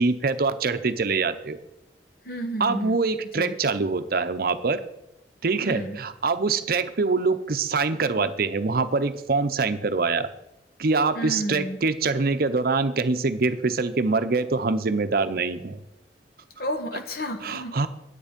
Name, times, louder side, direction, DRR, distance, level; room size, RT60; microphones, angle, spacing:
voice 1, 0.0-1.6 2.6-4.8 5.4-10.3 10.8-15.8 17.4-17.9, right 4 dB, 55° right, 10 dB, 0.7 m, -24 dB
voice 2, 2.2-3.0 3.3-3.5 5.6-6.0 11.1-11.8 16.6-17.7, equal, 60° left, 6 dB, 1.3 m, -31 dB
9.8 x 8.4 x 5.2 m, 0.85 s
head